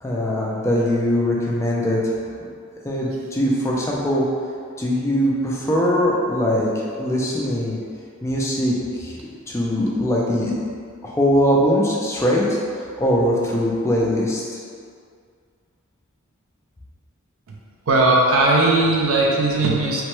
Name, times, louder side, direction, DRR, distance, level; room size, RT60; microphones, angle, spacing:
voice 1, 0.0-2.0 2.8-4.3 4.8-6.7 7.0-7.8 8.2-9.2 9.5-10.5 11.0-14.4, equal, 15° left, -4 dB, 0.3 m, -21 dB
voice 2, 17.9-20.0, right 2 dB, 65° right, -2 dB, 0.4 m, -17 dB
3.0 x 2.1 x 3.0 m, 2.1 s
head